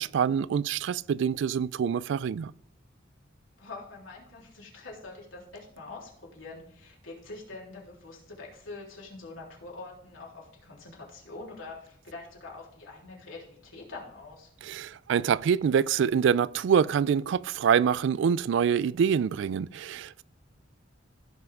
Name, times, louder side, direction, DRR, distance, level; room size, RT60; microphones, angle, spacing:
voice 1, 0.0-2.5 14.6-20.2, right 7 dB, 65° right, 0.3 m, -25 dB
voice 2, 3.6-14.5, left 3 dB, 90° left, 3.5 m, -45 dB
16.0 x 5.7 x 3.6 m
head